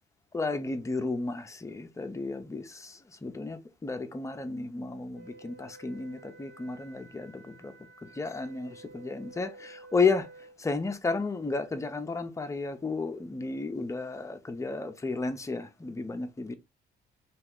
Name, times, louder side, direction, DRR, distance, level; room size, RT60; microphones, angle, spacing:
voice 1, 0.3-7.7 8.0-10.3 10.6-16.5, left 4 dB, 15° left, 0.5 m, -33 dB
Wind instrument woodwind instrument, 5.1-10.6, right 3 dB, 70° right, 0.8 m, -52 dB
2.8 x 2.3 x 3.4 m
cardioid pair, 90°, 20 cm